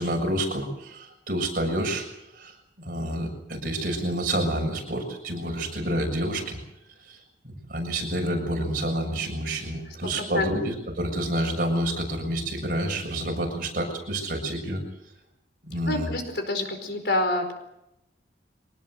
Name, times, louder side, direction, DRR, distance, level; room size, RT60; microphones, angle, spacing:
voice 1, 0.0-2.1 2.3-6.6 7.0-7.2 7.7-14.8 15.6-16.1, right 1 dB, 50° right, 2 dB, 7.1 m, -28 dB
voice 2, 10.1-10.5 15.9-17.5, left 2 dB, 70° left, 6 dB, 4.6 m, -27 dB
24.0 x 19.5 x 8.0 m, 0.85 s
head